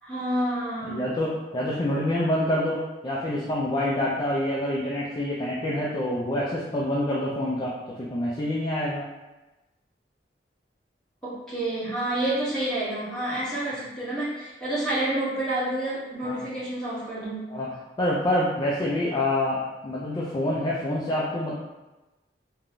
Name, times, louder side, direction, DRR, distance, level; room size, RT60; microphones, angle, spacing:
voice 1, 0.0-1.0 11.2-17.5, right 1 dB, 5° left, -12 dB, 1.3 m, -29 dB
voice 2, 0.8-9.0 16.2-16.5 17.5-17.7 18.0-21.5, left 1 dB, 25° left, -6 dB, 0.3 m, -27 dB
3.3 x 2.4 x 2.2 m, 1.1 s
head